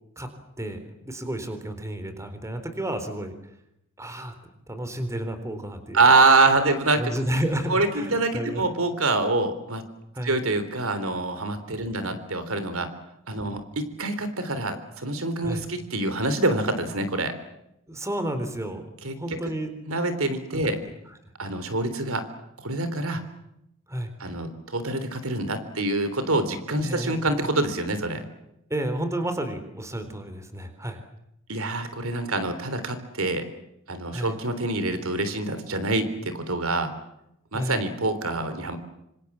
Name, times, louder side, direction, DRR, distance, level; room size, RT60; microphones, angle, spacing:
voice 1, 1.0-3.3 4.0-4.3 4.7-6.0 6.9-8.6 10.1-10.4 11.7-11.9 13.4-13.6 15.4-15.6 17.9-18.8 19.2-19.7 20.5-20.8 23.9-24.1 26.8-27.2 28.7-31.0 34.1-34.4 37.5-37.8, right 1 dB, 15° right, 8 dB, 3.9 m, -31 dB
voice 2, 5.9-7.1 7.7-9.8 10.2-12.9 13.3-17.3 19.0-19.4 19.9-20.8 21.4-22.2 22.6-23.2 24.2-28.2 31.5-33.5 33.9-36.9 37.5-38.8, right 2 dB, 65° right, 11 dB, 3.6 m, -25 dB
27.0 x 26.5 x 7.4 m, 0.81 s
head